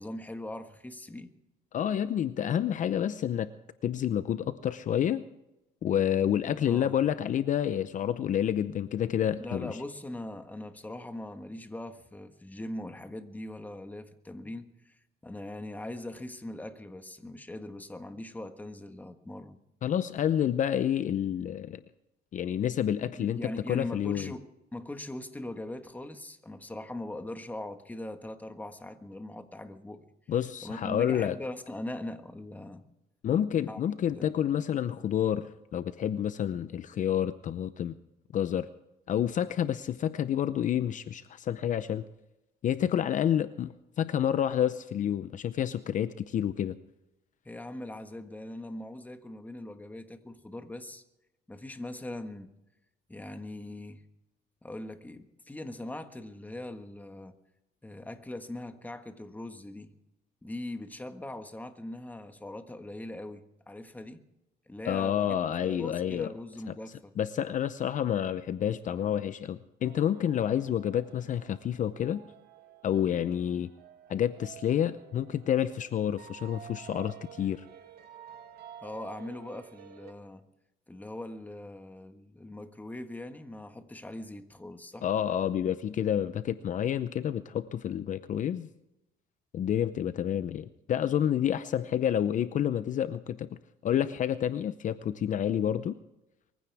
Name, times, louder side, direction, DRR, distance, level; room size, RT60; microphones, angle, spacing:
voice 1, 0.0-1.3 6.6-6.9 9.4-14.9 15.2-19.6 23.2-24.4 24.7-30.0 30.6-32.8 33.7-33.8 34.1-34.3 47.4-51.0 51.5-52.5 53.1-54.0 54.6-57.4 57.8-59.9 60.4-64.2 64.7-65.4 65.6-67.1 78.8-80.5 80.9-85.1, left 1 dB, 10° left, 8 dB, 1.5 m, -41 dB
voice 2, 1.7-3.5 3.8-5.2 5.8-9.8 19.8-21.8 22.3-24.3 30.3-31.4 33.2-37.9 38.3-38.7 39.1-42.0 42.6-46.7 64.8-66.3 67.2-72.2 72.8-73.7 74.1-77.6 85.0-88.7 89.5-93.5 93.8-96.0, left 10 dB, 50° left, 13 dB, 0.7 m, -29 dB
sound 1, 69.8-80.1, right 9 dB, 70° right, 2.1 m, -51 dB
23.0 x 15.5 x 3.5 m, 0.91 s
cardioid pair, 110°, 17 cm